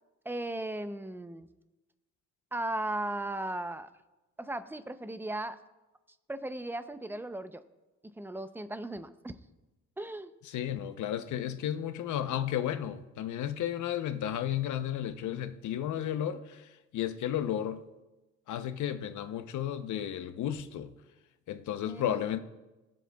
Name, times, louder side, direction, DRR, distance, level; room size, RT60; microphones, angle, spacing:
voice 1, 0.2-1.5 2.5-3.9 4.4-5.6 6.3-7.6 8.0-9.3 10.0-10.3 21.9-22.2, right 1 dB, 5° right, 0.6 m, -36 dB
voice 2, 10.5-17.8 18.5-20.9 21.5-22.4, left 10 dB, 75° left, 0.8 m, -33 dB
22.0 x 7.6 x 2.3 m
cardioid pair, 90°, 30 cm